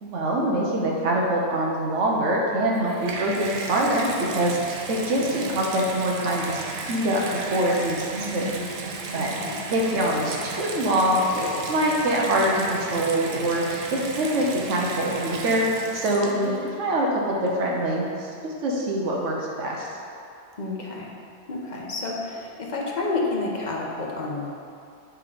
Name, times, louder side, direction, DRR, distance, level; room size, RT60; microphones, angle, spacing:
voice 1, 0.0-8.0 8.3-8.6 9.1-9.3 9.7-16.5 16.8-19.9, right 1 dB, 85° right, -2 dB, 1.2 m, -24 dB
Water tap faucet / Bathtub (filling or washing), 2.6-16.7 17.5-17.6, right 3 dB, 55° right, 0.8 m, -35 dB
voice 2, 8.1-8.7 9.2-9.6 16.3-16.5 20.6-21.1 21.5-24.5, left 2 dB, 40° left, -2 dB, 0.9 m, -30 dB
7.9 x 3.7 x 4.9 m, 2.5 s
omnidirectional pair, 1.2 m